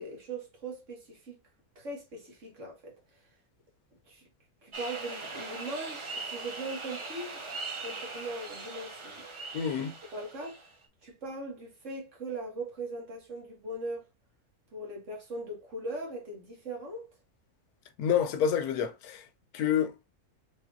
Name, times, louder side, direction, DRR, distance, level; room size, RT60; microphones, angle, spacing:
voice 1, 0.0-1.4 1.8-3.0 4.1-4.2 4.6-7.4 7.8-9.4 10.1-10.6 11.0-14.1 14.7-17.0, right 2 dB, 55° right, 1.8 m, -40 dB
sound 1, 4.7-10.9, right 3 dB, 40° right, 0.4 m, -40 dB
voice 2, 9.5-10.0 18.0-19.3 19.5-20.0, left 8 dB, 90° left, 1.2 m, -28 dB
3.8 x 3.3 x 2.6 m
omnidirectional pair, 1.6 m